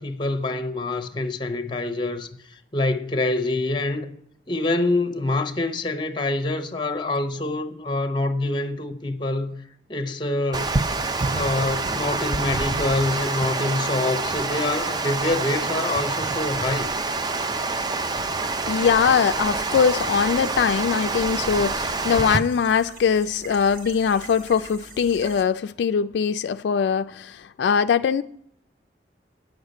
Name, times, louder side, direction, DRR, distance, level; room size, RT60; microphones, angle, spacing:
voice 1, 0.0-2.3 2.7-4.1 4.5-9.6 9.9-10.7 11.3-16.9, left 2 dB, 25° left, 0.8 m, -26 dB
Water, 10.5-22.4, right 3 dB, 25° right, 0.4 m, -26 dB
sound 1, 18.4-25.4, right 3 dB, 50° right, 1.6 m, -44 dB
voice 2, 18.7-28.2, left 6 dB, 70° left, 0.3 m, -22 dB
9.1 x 6.5 x 8.0 m
head